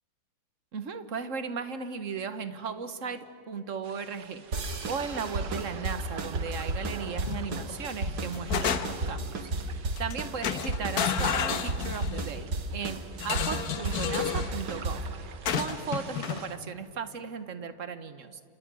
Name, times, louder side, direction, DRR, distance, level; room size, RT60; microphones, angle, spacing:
voice 1, 0.7-18.4, right 5 dB, 50° right, 11 dB, 1.5 m, -36 dB
sound 1, 3.8-16.6, right 6 dB, 90° right, 2.0 m, -47 dB
sound 2, 4.5-15.2, right 2 dB, 65° right, 2.2 m, -33 dB
sound 3, 7.3-7.7 8.1-9.2 10.0-10.1 10.4-12.3 13.2-14.5 15.5-16.4, left 7 dB, 60° left, 1.5 m, -31 dB
29.0 x 28.0 x 6.2 m, 2.6 s
omnidirectional pair, 1.8 m